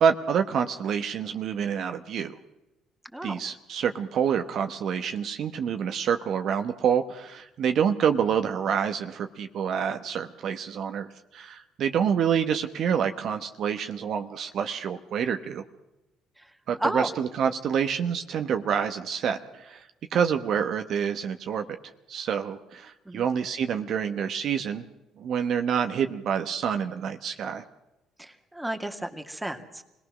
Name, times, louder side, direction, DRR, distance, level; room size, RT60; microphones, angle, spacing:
voice 1, 0.0-2.3 3.2-11.1 11.3-15.6 16.7-19.9 20.1-21.6 22.1-24.9 25.2-27.6, right 7 dB, 60° right, 7 dB, 1.1 m, -27 dB
voice 2, 16.8-17.1 23.1-23.3 28.2-29.8, right 1 dB, 5° right, 5 dB, 2.4 m, -32 dB
25.5 x 18.0 x 6.3 m, 0.97 s
supercardioid pair, 65°, 0 cm